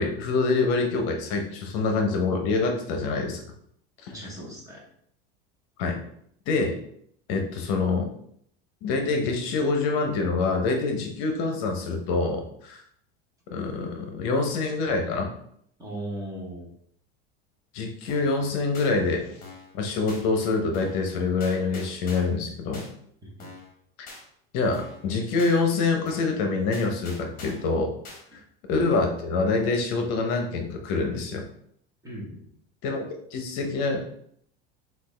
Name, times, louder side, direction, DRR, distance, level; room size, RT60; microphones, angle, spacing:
voice 1, 0.0-3.4 4.0-4.1 5.8-6.0 6.5-6.8 7.3-8.1 8.8-12.8 13.5-15.3 17.7-19.3 19.7-22.9 24.5-27.9 28.7-31.4 32.8-34.0, left 3 dB, 55° left, 4 dB, 0.7 m, -26 dB
voice 2, 4.1-4.8 15.8-16.7 23.2-23.5 32.0-32.5, right 1 dB, 10° right, -3 dB, 1.0 m, -37 dB
sound 1, 18.1-18.4 18.7-18.9 19.4-19.7 20.1-20.2 20.7-21.1 21.4-22.4 22.7-22.9 23.4-23.7 24.1-24.2 24.7-25.1 25.4-25.6 26.1-26.4 26.7-27.7 28.0-28.2, left 3 dB, 30° left, 1.2 m, -44 dB
5.8 x 2.4 x 3.2 m, 0.69 s
supercardioid pair, 155°, 31 cm